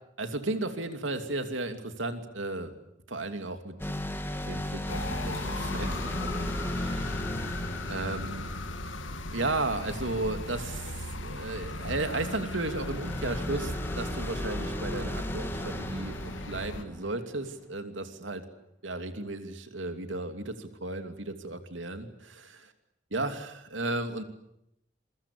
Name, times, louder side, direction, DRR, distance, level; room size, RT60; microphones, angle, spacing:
voice 1, 0.2-2.7 3.1-3.7 4.5-6.4 6.7-7.3 7.9-8.5 9.3-18.4 18.8-22.7 23.1-24.2, right 2 dB, 85° right, 7 dB, 2.8 m, -34 dB
sound 1, 3.8-9.3 12.8-17.5, left 1 dB, 10° left, 2.1 m, -36 dB
sound 2, 4.9-16.8, left 2 dB, 90° left, 2.2 m, -37 dB
27.5 x 23.5 x 8.5 m, 0.81 s
head